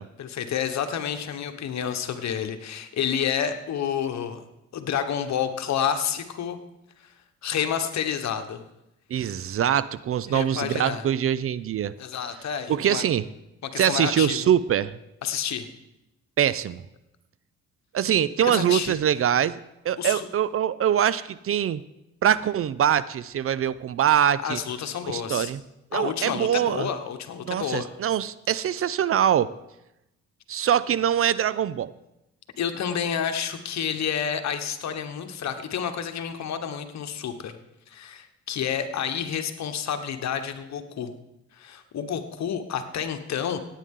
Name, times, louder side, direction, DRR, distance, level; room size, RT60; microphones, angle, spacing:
voice 1, 0.2-4.4 4.7-6.6 7.0-7.1 7.4-8.6 10.3-11.0 12.0-13.0 13.6-14.4 15.2-15.7 18.4-19.0 20.0-20.3 24.4-25.5 25.9-27.9 32.6-37.6 37.9-41.1 41.5-43.6, left 8 dB, 65° left, 7 dB, 1.2 m, -29 dB
voice 2, 9.1-11.9 12.7-13.3 13.8-15.0 16.4-16.8 17.9-21.8 22.2-24.6 25.1-25.6 25.9-26.9 27.4-29.5 30.5-31.9, right 9 dB, 50° right, 17 dB, 0.5 m, -23 dB
16.5 x 9.1 x 3.7 m, 0.88 s
cardioid pair, 90°, 30 cm